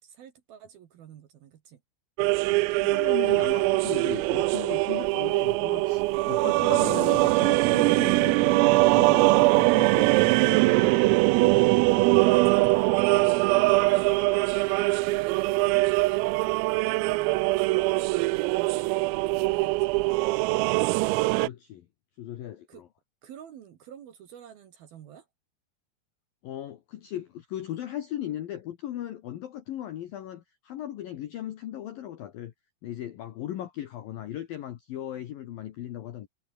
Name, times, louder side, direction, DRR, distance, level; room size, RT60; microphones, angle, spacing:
voice 1, 0.0-1.8 11.9-13.4 13.7-14.1 15.2-20.0 22.7-22.8 23.2-25.3, right 9 dB, 60° right, 2.9 m, -48 dB
sound 1, 2.2-21.5, right 23 dB, 90° right, 3.3 m, -22 dB
voice 2, 2.4-11.2 21.4-21.9 22.2-22.9 26.4-32.5 32.8-36.3, left 12 dB, 70° left, 2.2 m, -37 dB
omnidirectional pair, 6.0 m